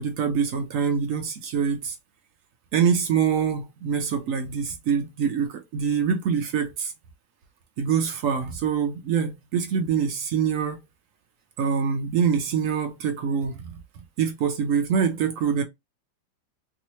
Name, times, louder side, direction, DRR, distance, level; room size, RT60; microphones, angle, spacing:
voice 1, 0.0-2.0 2.7-6.9 7.8-10.8 11.6-13.8 14.2-15.6, right 7 dB, 70° right, 0.8 m, -25 dB
3.0 x 2.8 x 3.0 m
omnidirectional pair, 1.9 m